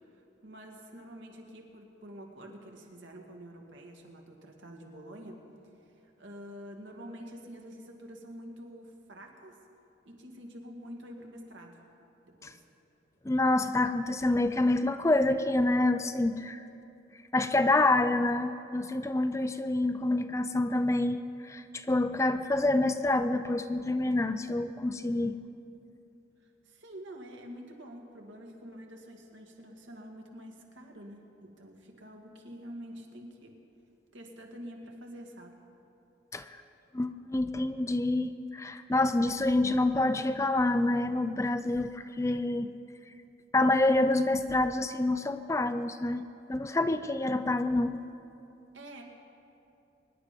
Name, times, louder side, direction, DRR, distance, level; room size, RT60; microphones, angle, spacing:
voice 1, 0.1-5.4 5.7-9.6 10.0-11.8 12.3-12.6 26.4-33.5 34.1-35.5 48.7-49.0, equal, 75° right, 1 dB, 2.0 m, -47 dB
voice 2, 13.3-16.6 17.3-25.4 36.3-36.6 36.9-42.7 43.5-48.0, left 2 dB, 15° left, 10 dB, 0.4 m, -27 dB
24.0 x 10.5 x 5.2 m, 2.7 s
head